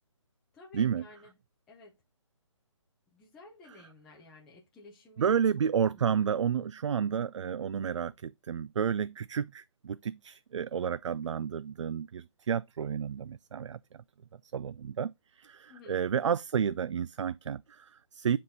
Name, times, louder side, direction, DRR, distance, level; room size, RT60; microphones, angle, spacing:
voice 1, 0.5-1.4 1.7-2.0 3.1-5.4 5.9-6.1 15.7-16.0, left 3 dB, 5° left, 0.4 m, -54 dB
voice 2, 5.2-13.8 14.5-15.1 15.4-18.4, right 7 dB, 65° right, 0.4 m, -31 dB
9.9 x 3.6 x 4.0 m
hypercardioid pair, 165°, 16 cm